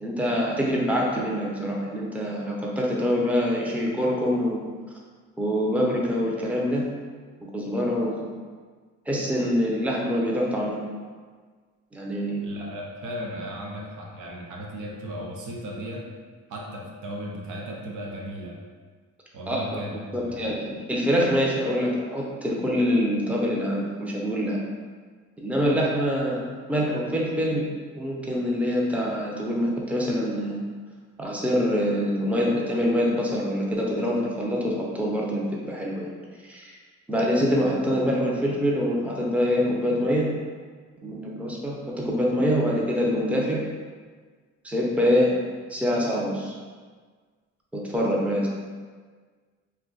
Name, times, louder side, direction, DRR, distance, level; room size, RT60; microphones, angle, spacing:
voice 1, 0.0-4.6 5.4-6.9 7.5-8.2 9.1-10.8 11.9-12.4 19.5-19.8 20.1-24.6 25.4-26.4 26.7-27.7 27.9-30.6 31.2-36.1 36.4-36.7 37.1-40.3 41.0-43.6 44.6-45.4 45.7-46.6 47.7-48.5, equal, 5° right, -3 dB, 0.5 m, -25 dB
voice 2, 12.4-16.0 16.5-18.6 19.3-20.5, equal, 80° right, -2 dB, 0.7 m, -36 dB
2.6 x 2.2 x 3.8 m, 1.5 s
cardioid pair, 90°, 30 cm